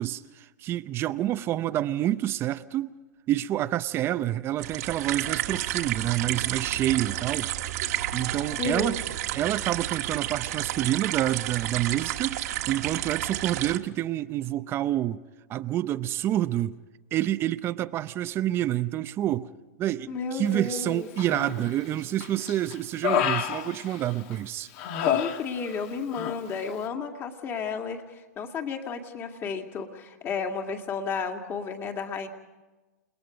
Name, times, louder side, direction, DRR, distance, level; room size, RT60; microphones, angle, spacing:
voice 1, 0.0-3.0 3.3-7.5 8.1-9.0 9.3-12.4 12.7-15.2 15.5-16.8 17.1-19.5 19.8-24.7, right 13 dB, 25° right, 0.6 m, -28 dB
sound 1, 4.6-13.8, right 13 dB, 60° right, 1.5 m, -31 dB
voice 2, 8.6-9.0 20.1-21.1 25.0-32.3, left 5 dB, 25° left, 2.2 m, -32 dB
Human voice, 21.2-21.8 22.2-24.3 24.8-25.9 26.1-26.4, left 9 dB, 50° left, 1.6 m, -29 dB
29.5 x 20.0 x 5.1 m
hypercardioid pair, 140°, 9 cm